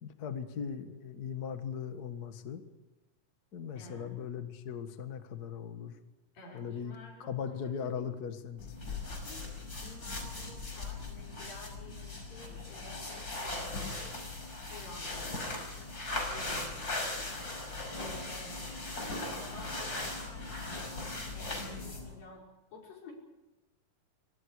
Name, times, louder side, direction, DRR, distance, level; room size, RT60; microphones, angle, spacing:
voice 1, 0.0-2.6 3.5-6.0 6.5-7.0 7.2-8.7, left 7 dB, 40° left, 7 dB, 1.4 m, -39 dB
voice 2, 3.7-4.3 6.3-8.1 9.0-14.2 14.7-15.6 16.3-17.3 17.9-18.7 19.2-22.4 22.7-23.1, left 2 dB, 85° left, -1 dB, 7.1 m, -51 dB
sound 1, 8.6-22.2, left 2 dB, 25° left, 5.9 m, -39 dB
28.0 x 24.5 x 4.9 m, 1.1 s
omnidirectional pair, 3.9 m